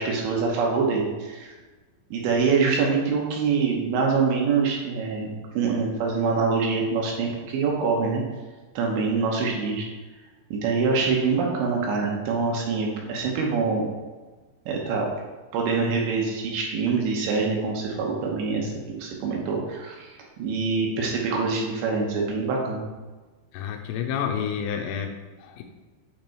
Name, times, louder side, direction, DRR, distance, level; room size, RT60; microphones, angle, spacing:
voice 1, 0.0-1.5 2.1-8.2 8.8-9.9 10.5-13.9 14.7-15.1 15.5-22.9, right 4 dB, 75° right, -1 dB, 3.1 m, -25 dB
voice 2, 23.5-25.6, left 8 dB, 80° left, 3 dB, 2.8 m, -30 dB
8.8 x 3.4 x 4.5 m, 1.3 s
omnidirectional pair, 5.6 m